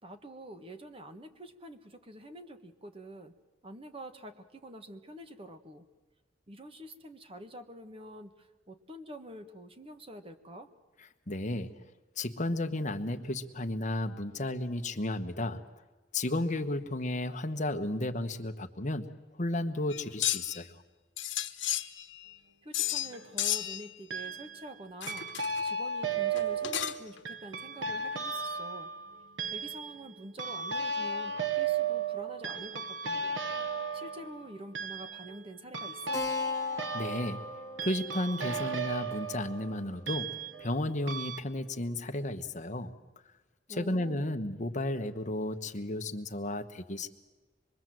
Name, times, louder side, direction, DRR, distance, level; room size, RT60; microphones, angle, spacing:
voice 1, 0.0-3.4 3.6-5.9 6.5-10.7 22.6-25.3 25.6-28.9 29.5-33.4 33.9-36.2 43.7-44.4, right 1 dB, 30° right, 7 dB, 1.6 m, -47 dB
voice 2, 11.3-11.7 12.2-15.6 16.1-20.7 36.9-37.4 37.8-42.9 43.7-47.1, left 1 dB, 40° left, 6 dB, 1.3 m, -33 dB
sound 1, 19.9-20.6 21.2-22.3 22.7-23.1 23.4-23.9 25.0-25.7 26.3-27.2, left 12 dB, 80° left, 1.2 m, -32 dB
sound 2, 22.8-23.3 24.1-24.7 25.1-40.8 41.1-41.4, right 4 dB, 85° right, 1.2 m, -35 dB
Keyboard (musical), 36.1-41.1, left 1 dB, 15° left, 2.0 m, -44 dB
25.5 x 23.0 x 7.7 m, 1.2 s
head